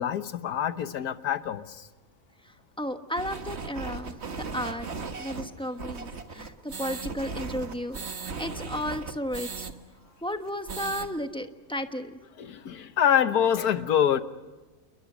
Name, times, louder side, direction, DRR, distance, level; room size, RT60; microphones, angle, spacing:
voice 1, 0.0-1.8 6.4-6.5 12.4-14.2, left 9 dB, 80° left, 11 dB, 1.6 m, -25 dB
voice 2, 2.4-4.9 5.2-8.0 8.4-9.7 10.2-12.2, equal, 5° left, 7 dB, 1.1 m, -34 dB
sound 1, 3.1-9.7 10.0-10.1 10.4-11.1, right 4 dB, 45° right, 1.7 m, -37 dB
29.0 x 22.0 x 6.3 m, 1.2 s
omnidirectional pair, 1.6 m